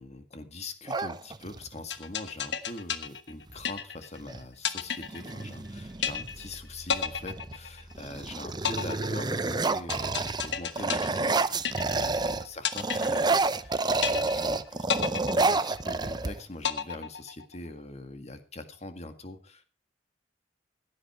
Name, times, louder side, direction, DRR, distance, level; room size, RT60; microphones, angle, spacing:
voice 1, 0.0-13.3 13.6-19.6, left 2 dB, 40° left, 7 dB, 1.9 m, -43 dB
sound 1, 0.9-1.8 3.5-3.6 3.9-4.4 5.0-6.5 7.1-7.5 7.9-12.5 12.7-16.7, right 3 dB, 25° right, 0.6 m, -29 dB
sound 2, 1.9-4.2 4.6-5.7 6.0-6.6 6.9-8.2 8.7-12.2 12.7-13.7 14.0-14.6 14.9-16.2 16.6-17.7, left 7 dB, 75° left, 1.2 m, -32 dB
sound 3, 4.7-12.5 14.6-14.7 15.1-15.7 16.3-16.4 16.9-17.2, equal, 5° right, 1.8 m, -53 dB
16.0 x 10.5 x 4.6 m, 0.35 s
head